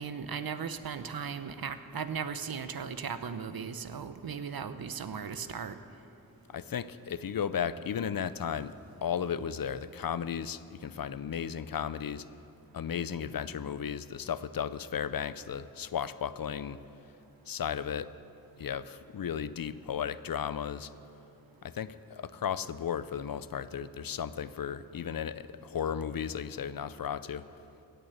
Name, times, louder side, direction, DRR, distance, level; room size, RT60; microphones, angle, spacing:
voice 1, 0.0-5.8, right 6 dB, 75° right, 11 dB, 0.8 m, -37 dB
voice 2, 6.5-8.7 9.0-12.2 12.7-16.8 17.5-18.1 18.6-20.9 21.6-27.4, left 8 dB, 70° left, 15 dB, 0.6 m, -35 dB
17.5 x 6.8 x 8.0 m, 2.7 s
wide cardioid pair, 50°, 36 cm